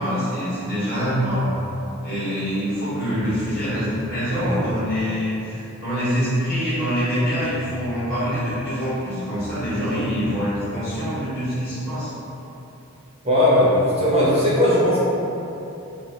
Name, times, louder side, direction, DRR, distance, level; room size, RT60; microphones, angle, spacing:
voice 1, 0.0-1.5 2.0-12.1, equal, 45° left, -12 dB, 1.3 m, -25 dB
sound 1, 3.2-4.9 7.0-7.1 7.4-8.6 9.3-11.0, equal, 85° left, 0.9 m, -39 dB
voice 2, 13.2-15.0, left 1 dB, 30° right, -8 dB, 0.7 m, -17 dB
3.1 x 2.6 x 2.8 m, 2.8 s
head